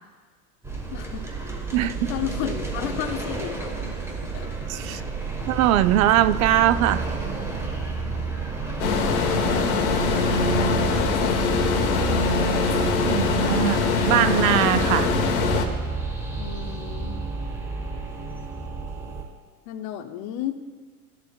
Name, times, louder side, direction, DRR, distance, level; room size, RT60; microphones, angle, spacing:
sound 1, 0.6-19.2, right 4 dB, 5° right, 1.2 m, -31 dB
voice 1, 0.9-1.3 2.1-3.7 4.3-4.5 4.9-5.0 9.5-11.4 16.4-17.2 19.7-20.5, left 11 dB, 40° left, 9 dB, 0.7 m, -33 dB
voice 2, 1.7-2.1 4.7-5.0 5.5-7.0 13.0-15.1, right 12 dB, 65° right, 14 dB, 0.5 m, -21 dB
sound 2, 8.8-15.6, left 4 dB, 65° left, 1.3 m, -23 dB
14.0 x 6.8 x 2.3 m, 1.5 s
hypercardioid pair, 105°, 45 cm